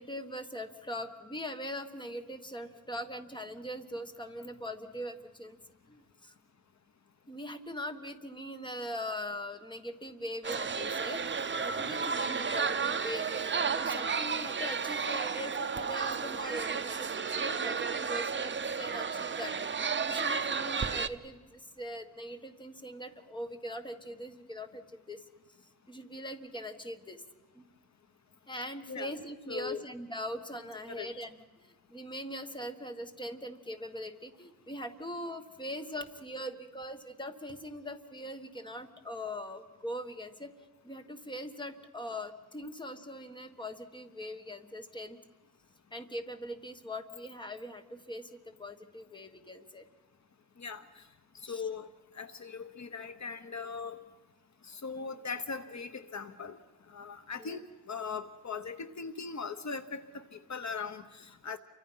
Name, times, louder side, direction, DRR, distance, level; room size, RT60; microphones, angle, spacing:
voice 1, 0.0-5.6 5.9-6.3 7.3-25.2 25.9-27.2 27.5-27.7 28.5-40.5 40.8-45.2 45.9-49.9 51.5-51.6 57.4-57.6, equal, 15° left, 7 dB, 1.4 m, -41 dB
sound 1, 10.4-21.1, right 5 dB, 35° right, 0.7 m, -32 dB
voice 2, 29.5-29.8 30.9-31.1 50.6-51.0 51.4-51.9 52.1-54.0 54.7-56.6 56.9-57.6 57.9-61.6, left 5 dB, 55° left, 10 dB, 1.0 m, -39 dB
29.5 x 24.5 x 5.7 m, 1.3 s
wide cardioid pair, 160°, 33 cm